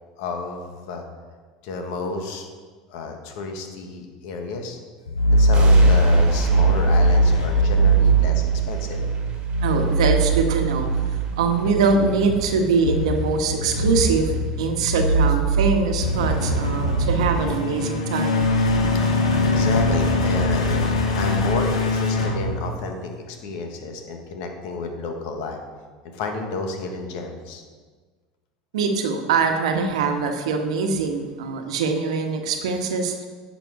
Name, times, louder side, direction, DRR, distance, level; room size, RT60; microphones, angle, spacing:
voice 1, 0.2-1.0 1.6-2.5 2.9-4.8 5.3-9.1 18.9-20.8 21.1-25.6 26.0-27.6, left 4 dB, 70° left, 4 dB, 1.6 m, -31 dB
sound 1, 5.1-23.2, right 1 dB, 90° left, 1.3 m, -21 dB
sound 2, 5.5-14.7 14.9-15.1 15.5-15.6 15.9-16.0 16.2-16.6 16.8-16.9, right 4 dB, 40° right, 1.7 m, -37 dB
voice 2, 9.6-10.9 11.3-18.5 28.7-33.3, right 4 dB, 80° right, 4 dB, 1.2 m, -23 dB
10.5 x 6.0 x 4.8 m, 1.5 s
hypercardioid pair, 85°, 3 cm